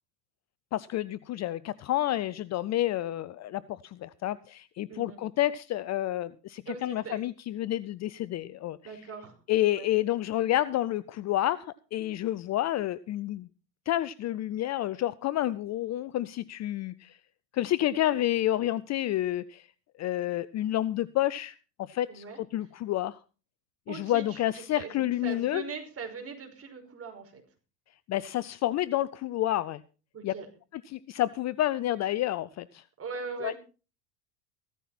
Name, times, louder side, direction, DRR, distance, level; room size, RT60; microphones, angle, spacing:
voice 1, 0.7-8.8 9.5-13.5 13.9-17.2 17.5-19.7 20.0-22.2 22.5-23.2 23.9-25.6 28.1-29.8 30.2-30.3 30.7-32.8 33.4-33.5, left 14 dB, 35° left, 18 dB, 0.6 m, -29 dB
voice 2, 4.9-5.2 6.7-7.2 8.8-9.4 9.7-9.9 22.1-22.4 23.9-27.4 30.1-30.5 33.0-33.6, right 5 dB, 30° right, 4 dB, 5.5 m, -40 dB
16.0 x 14.0 x 4.3 m, 0.35 s
hypercardioid pair, 95°, 49 cm